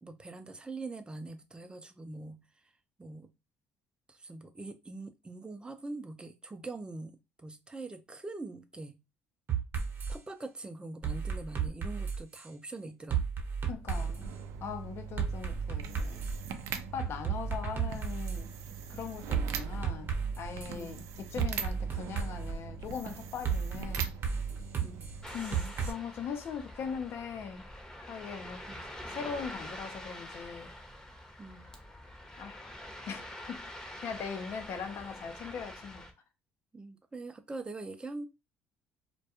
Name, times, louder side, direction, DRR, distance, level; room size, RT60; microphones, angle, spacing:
voice 1, 0.0-2.4 3.0-3.3 4.1-9.0 10.1-13.2 20.7-21.0 24.8-25.1 28.7-28.9 31.4-31.7 36.7-38.3, right 2 dB, 20° right, 0.5 m, -43 dB
sound 1, 9.5-10.2 11.0-12.5 13.1-14.3 15.2-16.5 17.0-18.4 19.3-20.7 21.4-22.6 23.4-25.9, right 6 dB, 45° right, 0.8 m, -33 dB
voice 2, 13.7-16.2 16.7-18.5 18.9-24.1 25.3-27.6 28.1-30.7 32.4-32.6 33.1-33.6 34.0-36.1, left 6 dB, 60° left, 0.6 m, -40 dB
sound 2, 13.7-25.7, right 6 dB, 75° right, 0.4 m, -42 dB
Ocean, 25.2-36.1, left 1 dB, 15° left, 0.8 m, -46 dB
2.2 x 2.2 x 2.9 m
supercardioid pair, 75°, 5 cm